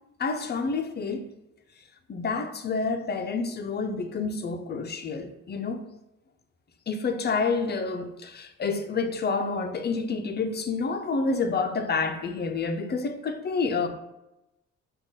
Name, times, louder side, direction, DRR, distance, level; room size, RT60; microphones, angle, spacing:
voice 1, 0.2-1.3 2.1-5.8 6.9-13.9, left 4 dB, 35° left, 0.5 m, -28 dB
5.4 x 2.4 x 3.7 m
cardioid pair, 90°, 30 cm